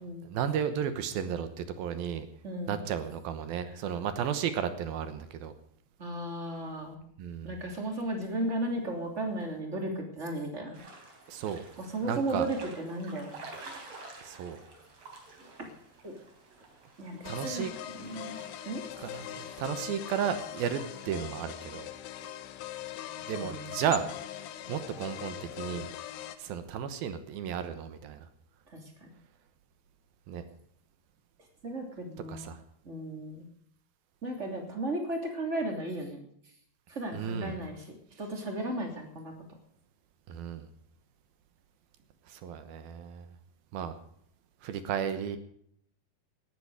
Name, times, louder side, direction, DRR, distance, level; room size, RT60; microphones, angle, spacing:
voice 1, 0.0-2.3 2.7-5.5 7.2-7.5 11.3-11.6 12.0-12.5 14.2-14.6 17.3-17.7 19.0-21.9 23.3-25.9 26.4-28.3 30.3-30.4 32.3-32.6 37.1-37.6 40.3-40.7 42.3-43.3 43.7-43.9 44.6-45.4, right 8 dB, 70° right, 10 dB, 2.7 m, -34 dB
voice 2, 2.4-2.8 6.0-7.0 7.4-10.8 11.9-13.4 15.6-15.7 16.0-16.2 17.0-17.6 17.9-18.4 18.6-18.8 23.4-23.8 28.7-29.1 31.6-32.5 32.8-33.5 34.2-36.2 36.9-39.3, right 1 dB, 20° right, 3 dB, 2.6 m, -35 dB
sound 1, 10.7-21.3, right 3 dB, 40° right, 4.3 m, -51 dB
sound 2, 17.2-26.4, left 12 dB, 85° left, 3.2 m, -41 dB
18.5 x 13.0 x 4.9 m, 0.67 s
omnidirectional pair, 4.8 m